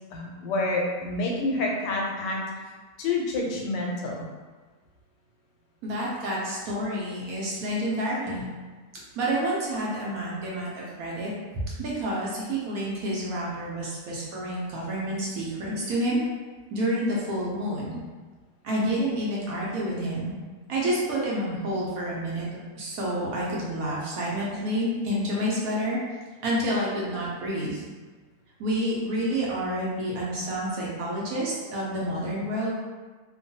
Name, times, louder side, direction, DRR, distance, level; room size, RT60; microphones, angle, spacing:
voice 1, 0.1-2.4 3.0-4.3, left 2 dB, 90° left, -1 dB, 1.3 m, -28 dB
voice 2, 5.8-8.4 9.2-16.2 16.7-18.0 18.6-20.3 20.7-22.5 22.8-26.0 26.4-27.8 28.6-32.7, right 1 dB, 65° right, -5 dB, 1.0 m, -29 dB
3.0 x 2.2 x 2.6 m, 1.4 s
omnidirectional pair, 1.8 m